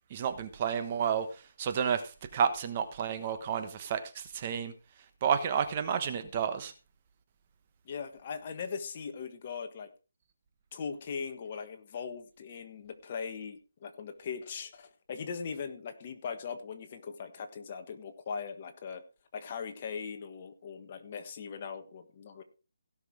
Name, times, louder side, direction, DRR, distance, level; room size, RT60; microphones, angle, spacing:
voice 1, 0.1-1.3 1.6-2.0 2.3-4.7 5.2-6.7, right 7 dB, 25° right, 9 dB, 1.1 m, -30 dB
voice 2, 7.8-9.9 10.7-19.0 19.3-22.4, left 6 dB, 30° left, 7 dB, 1.4 m, -40 dB
16.5 x 6.2 x 4.7 m, 0.33 s
hypercardioid pair, 170°, 0 cm